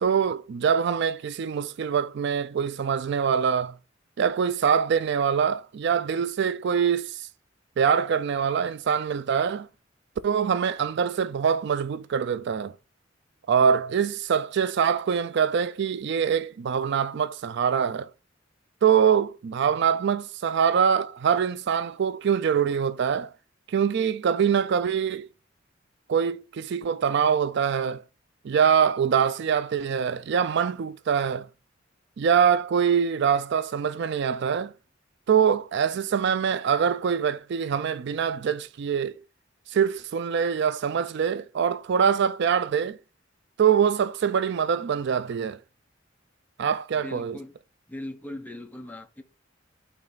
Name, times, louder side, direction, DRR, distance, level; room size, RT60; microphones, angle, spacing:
voice 1, 0.0-3.8 4.2-7.3 7.8-9.7 10.2-12.7 13.5-18.1 18.8-23.3 23.7-25.3 26.1-28.0 28.4-31.5 32.2-34.7 35.3-39.2 39.7-43.0 43.6-45.6 46.6-47.4, right 7 dB, 60° right, 0.4 m, -24 dB
voice 2, 46.9-47.5 47.9-49.2, left 1 dB, 10° left, 0.8 m, -39 dB
8.7 x 3.3 x 3.9 m
head